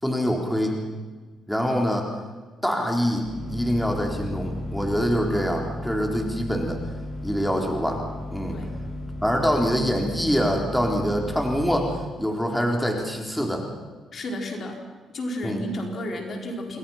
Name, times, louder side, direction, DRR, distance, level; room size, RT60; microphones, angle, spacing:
voice 1, 0.0-0.8 1.5-2.1 2.6-6.8 7.2-8.0 8.3-8.6 9.2-13.7 15.4-15.6, equal, ahead, 1 dB, 4.0 m, -25 dB
sound 1, 3.2-12.0, left 1 dB, 15° right, 7.8 m, -35 dB
voice 2, 14.1-14.8 15.1-16.8, left 1 dB, 50° left, 2 dB, 4.7 m, -32 dB
28.0 x 20.5 x 5.8 m, 1.4 s
cardioid pair, 90°, 0 cm